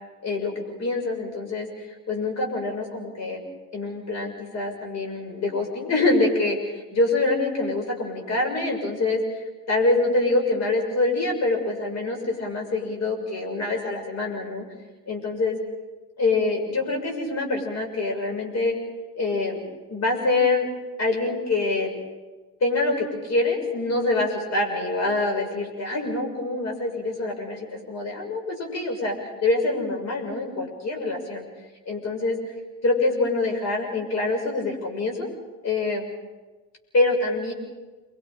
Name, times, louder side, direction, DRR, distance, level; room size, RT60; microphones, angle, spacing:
voice 1, 0.8-3.4 3.7-14.6 15.1-15.6 16.2-18.7 19.1-19.6 19.9-20.7 21.0-21.9 22.6-31.4 31.9-32.4 32.8-35.3 35.6-36.1 36.9-37.5, left 2 dB, 35° left, 2 dB, 6.6 m, -25 dB
28.5 x 23.0 x 5.1 m, 1.2 s
figure-of-eight pair, 70°, 46 cm